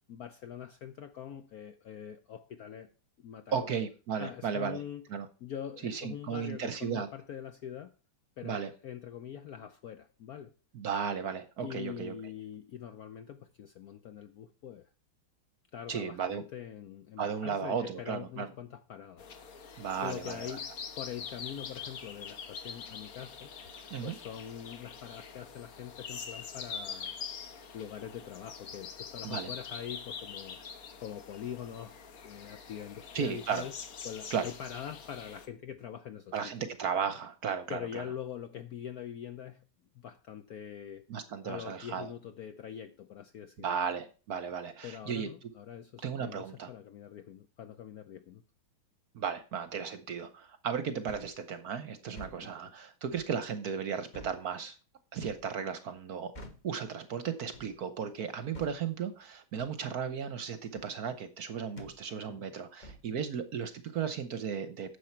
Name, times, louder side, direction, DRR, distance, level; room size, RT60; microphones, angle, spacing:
voice 1, 0.1-2.9 3.2-3.7 4.2-5.0 5.4-7.9 8.4-10.5 11.6-14.9 15.7-19.3 20.0-23.5 24.0-27.1 27.7-30.6 31.0-33.7 34.0-36.7 37.7-39.7 39.9-41.0 41.4-43.6 44.8-48.4 52.4-52.7 62.3-62.5, left 9 dB, 70° left, 0.9 m, -44 dB
voice 2, 3.5-4.8 5.1-5.3 5.8-7.1 8.4-8.7 10.7-12.1 15.9-16.4 17.2-18.5 19.8-20.6 23.9-24.1 29.2-29.5 33.1-33.7 34.3-34.5 36.3-38.0 41.1-42.1 43.6-45.5 46.0-46.7 49.1-54.8 55.1-56.3 56.6-65.0, right 7 dB, 60° right, 1.1 m, -35 dB
sound 1, 19.2-35.5, left 6 dB, 50° left, 1.3 m, -44 dB
sound 2, 51.1-51.4 52.1-52.4 53.1-53.3 54.1-54.4 55.2-55.5 56.3-56.7 57.5-57.8 58.5-58.8 59.6-59.8 60.7-60.9 61.8-62.0 62.8-63.1, left 1 dB, 30° left, 1.0 m, -48 dB
9.9 x 7.2 x 4.4 m
omnidirectional pair, 2.2 m